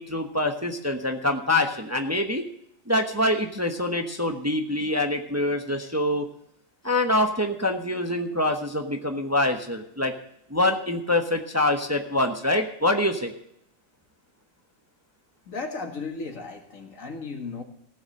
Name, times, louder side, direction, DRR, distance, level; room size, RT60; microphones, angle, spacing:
voice 1, 0.0-2.4 2.9-6.3 6.8-10.1 10.5-13.3, left 1 dB, 15° right, 4 dB, 1.0 m, -25 dB
voice 2, 15.5-17.6, left 4 dB, 80° left, 3 dB, 2.2 m, -35 dB
16.5 x 7.2 x 6.5 m, 0.72 s
omnidirectional pair, 1.4 m